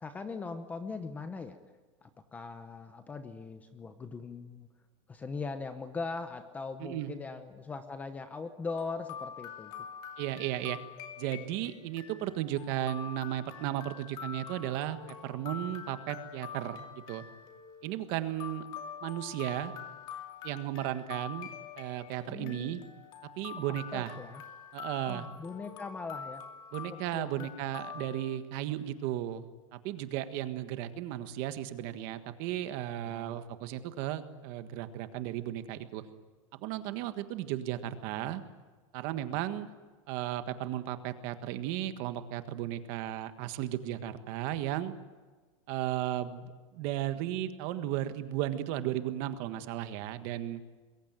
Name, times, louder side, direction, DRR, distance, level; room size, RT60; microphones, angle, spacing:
voice 1, 0.0-1.6 2.0-4.7 5.1-9.7 22.3-22.8 23.9-24.4 25.1-26.4 26.9-27.3 33.1-33.4 39.1-39.2, left 4 dB, 10° left, 9 dB, 0.9 m, -40 dB
voice 2, 6.8-7.1 10.2-10.8 11.2-16.8 17.1-17.2 17.8-18.7 19.0-19.7 20.4-21.5 21.8-22.8 23.2-24.1 24.7-25.3 26.7-36.0 36.5-38.4 38.9-39.7 40.1-44.9 45.7-50.6, right 13 dB, 35° right, 10 dB, 1.6 m, -35 dB
sound 1, 8.7-28.4, left 7 dB, 30° left, 2.5 m, -46 dB
26.5 x 22.0 x 9.1 m, 1.3 s
supercardioid pair, 180°, 16 cm